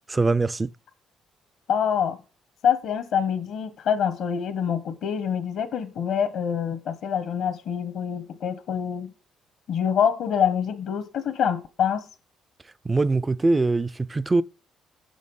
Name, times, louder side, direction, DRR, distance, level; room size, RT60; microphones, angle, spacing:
voice 1, 0.2-0.7 12.8-14.4, right 3 dB, 25° right, 0.4 m, -22 dB
voice 2, 1.7-2.2 2.6-9.1 9.7-12.1, left 8 dB, 75° left, 0.9 m, -25 dB
6.4 x 6.2 x 5.3 m
supercardioid pair, 70°, 0 cm